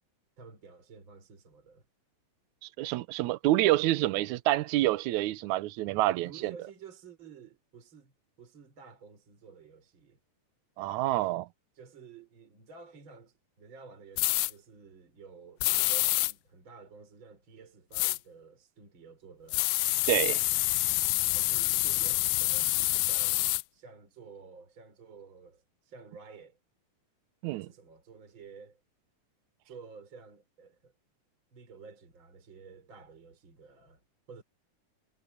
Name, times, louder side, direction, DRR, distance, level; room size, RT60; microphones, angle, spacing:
voice 1, 0.4-1.8 6.2-8.1 8.4-10.2 11.7-19.8 21.3-26.6 27.5-28.8 29.6-30.9 31.5-34.4, right 5 dB, 35° right, 4.7 m, -52 dB
voice 2, 2.8-6.5 10.8-11.5 20.1-20.4 27.4-27.7, right 16 dB, 75° right, 2.0 m, -27 dB
sound 1, 14.2-14.5 15.6-16.3 17.9-18.2 19.5-23.6, left 20 dB, 85° left, 2.1 m, -27 dB
omnidirectional pair, 3.7 m